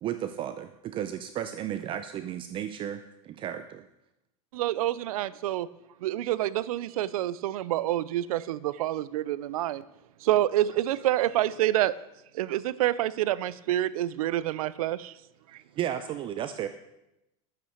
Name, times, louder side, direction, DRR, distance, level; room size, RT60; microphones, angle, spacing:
voice 1, 0.0-3.9 15.8-16.7, right 10 dB, 30° right, 11 dB, 0.5 m, -34 dB
voice 2, 4.5-5.7 6.0-9.8 10.2-11.9 12.3-15.1, right 14 dB, 85° right, 19 dB, 0.5 m, -27 dB
voice 3, 11.0-11.7 14.0-14.7 15.5-15.8 16.5-16.7, left 2 dB, 20° left, -3 dB, 4.7 m, -56 dB
11.5 x 8.7 x 6.4 m, 0.88 s
supercardioid pair, 145°, 18 cm